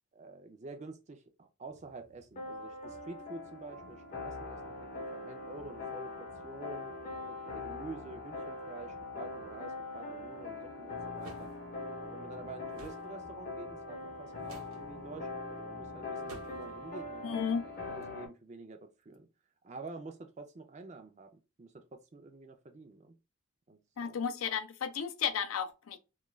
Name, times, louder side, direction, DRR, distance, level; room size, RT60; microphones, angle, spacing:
voice 1, 0.1-6.9 7.3-11.6 12.0-19.3 19.6-21.3 21.6-23.2 23.7-24.2, right 3 dB, 35° right, 0.4 m, -48 dB
sound 1, 1.7-18.3, left 3 dB, 40° left, 0.6 m, -42 dB
sound 2, 11.2-11.5 12.8-13.0 14.4-14.8 16.3-16.7, right 3 dB, 85° right, 0.7 m, -50 dB
voice 2, 17.2-17.6 24.0-26.0, left 7 dB, 80° left, 0.4 m, -33 dB
2.3 x 2.2 x 3.0 m
head